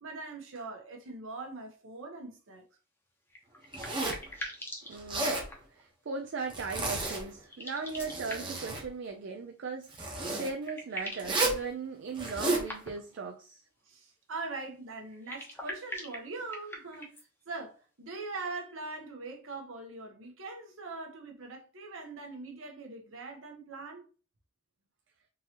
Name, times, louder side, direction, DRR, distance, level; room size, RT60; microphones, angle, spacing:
voice 1, 0.0-2.6 13.8-17.1 17.5-24.0, right 3 dB, 75° right, 1.0 m, -42 dB
sound 1, 3.3-5.8 7.4-8.7 10.1-10.2 10.4-11.4 12.2-13.2 15.1-17.3, equal, 10° left, 0.8 m, -43 dB
Zipper (clothing), 3.7-4.3 4.9-5.5 6.5-7.2 7.8-8.8 9.9-10.5 11.2-11.6 12.1-12.7, right 2 dB, 25° right, 0.9 m, -32 dB
voice 2, 4.9-5.4 5.7-13.6, right 4 dB, 60° right, 0.4 m, -38 dB
3.7 x 2.9 x 2.9 m
head